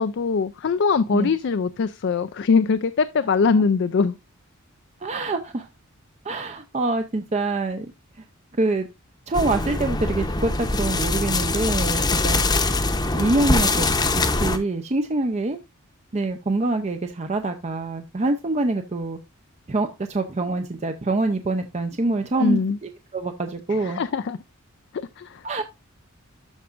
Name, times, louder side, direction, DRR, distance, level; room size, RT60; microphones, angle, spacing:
voice 1, 0.0-4.2 22.4-22.8 23.7-24.4 24.9-25.4, left 5 dB, 55° left, 0.4 m, -22 dB
voice 2, 5.0-5.7 6.2-7.9 8.6-8.9 9.3-12.4 13.1-15.6 16.1-19.2 19.7-24.0 25.4-25.6, right 2 dB, 30° right, 0.6 m, -25 dB
sound 1, 9.3-14.6, left 2 dB, 20° left, 0.8 m, -23 dB
12.5 x 4.9 x 2.5 m
head